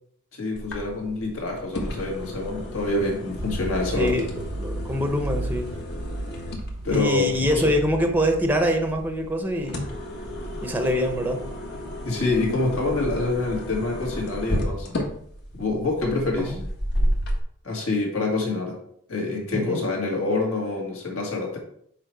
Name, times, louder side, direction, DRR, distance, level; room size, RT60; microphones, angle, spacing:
voice 1, 0.3-4.2 6.8-7.7 12.1-14.9 15.5-16.6 17.6-18.8 19.1-21.6, left 2 dB, 65° left, -1 dB, 2.2 m, -26 dB
sound 1, 0.6-17.4, equal, 50° left, 1.4 m, -32 dB
sound 2, 3.4-9.3, right 1 dB, 75° right, 0.8 m, -35 dB
voice 2, 4.0-5.7 6.9-9.9 10.6-11.4 16.4-16.6 19.5-19.8, equal, 10° right, 4 dB, 0.8 m, -24 dB
6.6 x 4.5 x 4.7 m, 0.66 s
head